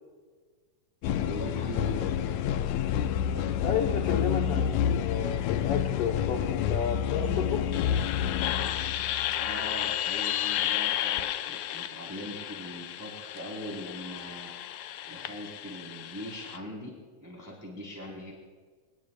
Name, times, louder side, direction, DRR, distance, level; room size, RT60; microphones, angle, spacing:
sound 1, 1.0-16.6, left 10 dB, 80° left, 2.0 m, -30 dB
voice 1, 1.2-2.5 9.4-14.7 15.1-16.9 17.2-18.3, equal, 5° right, -2 dB, 3.4 m, -41 dB
voice 2, 3.2-7.7, left 7 dB, 65° left, 3 dB, 1.6 m, -32 dB
28.0 x 19.5 x 2.3 m, 1.5 s
omnidirectional pair, 3.4 m